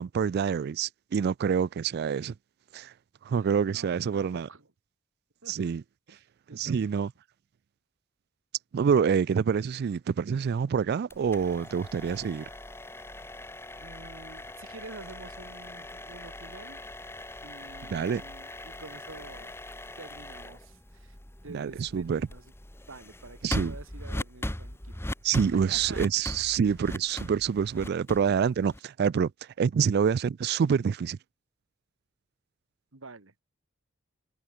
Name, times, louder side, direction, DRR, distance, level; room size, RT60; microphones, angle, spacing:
voice 1, 0.0-2.3 2.7-2.9 3.3-4.5 5.5-5.8 6.5-7.1 8.7-12.5 17.9-18.2 21.5-22.2 23.4-23.7 25.2-29.3 29.6-31.2, right 7 dB, 50° right, 0.3 m, -27 dB
voice 2, 3.3-4.7 5.4-5.7 6.1-7.0 13.8-16.8 17.4-19.5 20.0-21.2 21.4-22.5 22.9-23.4 23.6-25.1 25.5-26.1 32.9-33.3, right 3 dB, 80° right, 1.9 m, -48 dB
sound 1, 11.1-29.0, left 1 dB, 10° left, 1.8 m, -40 dB
head